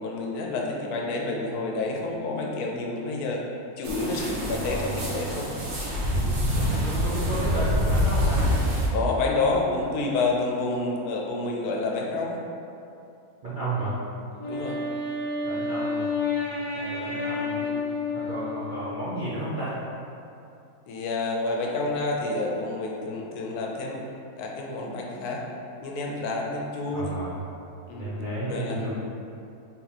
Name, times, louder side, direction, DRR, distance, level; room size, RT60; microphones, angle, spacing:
voice 1, 0.0-3.4 3.8-5.5 6.1-6.3 8.9-12.4 14.5-14.8 17.6-17.8 20.9-24.0 24.4-25.4 25.8-27.2 27.9-28.1 28.5-28.8, left 3 dB, 80° left, -1 dB, 1.1 m, -29 dB
sound 1, 3.8-8.9, equal, 70° right, 1.3 m, -26 dB
voice 2, 4.4-5.2 6.6-8.4 13.4-14.0 15.4-16.1 16.4-17.6 18.1-19.8 26.9-27.5 27.9-28.9, right 1 dB, 50° right, -10 dB, 0.6 m, -32 dB
Wind instrument woodwind instrument, 14.3-19.1, left 3 dB, 60° left, 0.5 m, -30 dB
3.8 x 2.9 x 4.0 m, 2.7 s
omnidirectional pair, 1.6 m